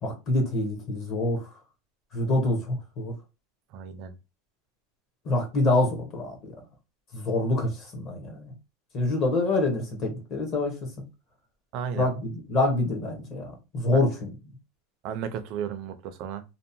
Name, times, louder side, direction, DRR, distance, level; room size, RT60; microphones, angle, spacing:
voice 1, 0.0-1.5 2.1-3.1 5.2-6.5 7.1-8.5 8.9-10.9 11.9-14.5, left 2 dB, 30° left, 0.7 m, -26 dB
voice 2, 3.7-4.1 11.7-12.1 13.9-14.0 15.0-16.4, right 8 dB, 40° right, 0.4 m, -34 dB
2.7 x 2.0 x 2.6 m
supercardioid pair, 170°, 0 cm